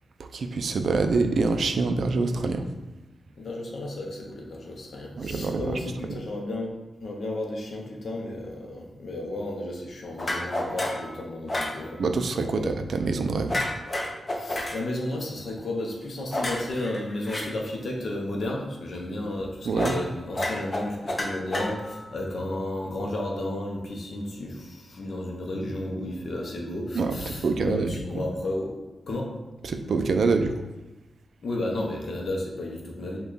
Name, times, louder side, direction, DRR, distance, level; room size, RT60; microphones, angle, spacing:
voice 1, 0.2-2.7 5.2-5.8 6.1-6.2 12.0-13.6 19.7-20.0 26.9-28.2 29.6-30.6, right 4 dB, 60° right, 7 dB, 0.4 m, -26 dB
voice 2, 3.4-12.0 12.4-12.7 14.3-28.7 29.1-29.3 31.4-33.2, left 1 dB, 50° left, -1 dB, 0.9 m, -33 dB
sound 1, 10.2-11.1 11.5-11.8 13.5-14.8 16.3-17.4 19.8-20.0 20.3-22.1, left 1 dB, 25° left, 0.7 m, -30 dB
5.7 x 2.3 x 3.9 m, 1.1 s
wide cardioid pair, 165°, 0 cm